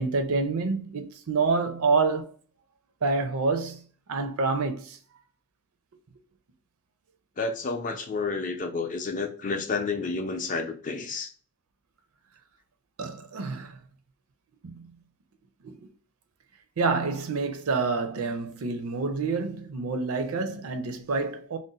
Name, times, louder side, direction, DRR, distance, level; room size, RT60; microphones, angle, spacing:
voice 1, 0.0-2.3 3.0-3.8 4.1-5.0 13.0-13.8 14.6-14.9 15.6-15.8 16.8-21.6, right 4 dB, 75° right, 0.5 m, -27 dB
voice 2, 7.4-11.3, left 4 dB, 35° left, 0.5 m, -30 dB
2.6 x 2.1 x 3.8 m
head